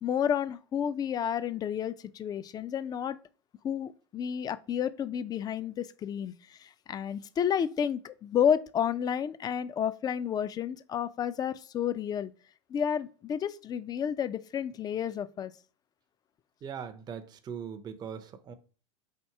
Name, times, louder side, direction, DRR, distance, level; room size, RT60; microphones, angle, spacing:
voice 1, 0.0-3.2 3.6-6.3 6.6-12.3 12.7-15.5, left 8 dB, 25° left, 0.4 m, -31 dB
voice 2, 16.6-18.5, right 7 dB, 25° right, 0.5 m, -40 dB
4.0 x 2.9 x 4.6 m
hypercardioid pair, 95°, 16 cm